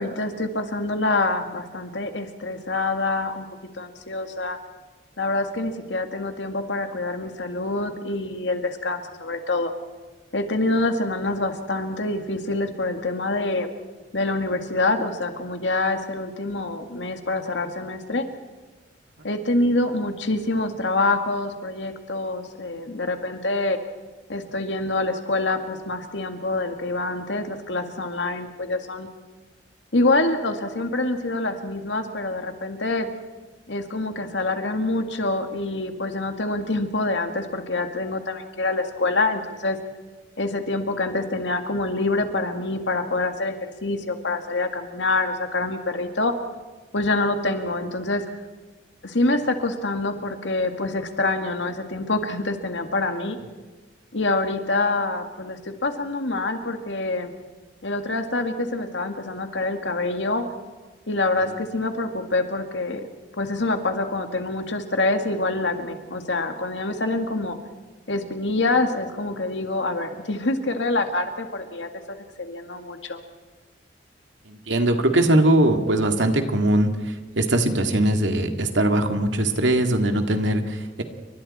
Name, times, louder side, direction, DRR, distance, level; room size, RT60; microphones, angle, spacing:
voice 1, 0.0-3.5 3.8-4.6 5.2-9.7 10.3-13.7 14.1-18.3 19.2-23.8 24.3-29.1 29.9-33.1 33.7-39.8 40.4-43.5 43.8-46.3 46.9-48.3 49.0-53.4 54.1-57.3 57.8-60.4 61.1-63.0 63.4-67.6 68.1-73.2, left 2 dB, 80° left, 6 dB, 2.1 m, -26 dB
voice 2, 74.5-81.0, right 1 dB, 90° right, 5 dB, 2.2 m, -21 dB
29.5 x 24.5 x 4.4 m, 1.3 s
head